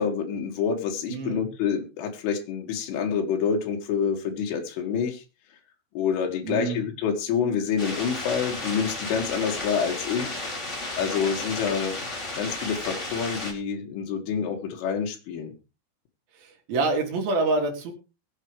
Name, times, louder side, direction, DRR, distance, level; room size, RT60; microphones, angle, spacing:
voice 1, 0.0-5.2 6.0-10.4 11.0-12.0 12.4-15.5, left 7 dB, 85° left, 2 dB, 4.4 m, -27 dB
voice 2, 1.1-1.5 6.4-6.9 16.7-17.9, right 3 dB, 55° right, 2 dB, 4.4 m, -26 dB
sound 1, 7.8-13.5, left 2 dB, 20° left, 2.0 m, -33 dB
21.5 x 8.5 x 3.2 m, 0.30 s
omnidirectional pair, 5.6 m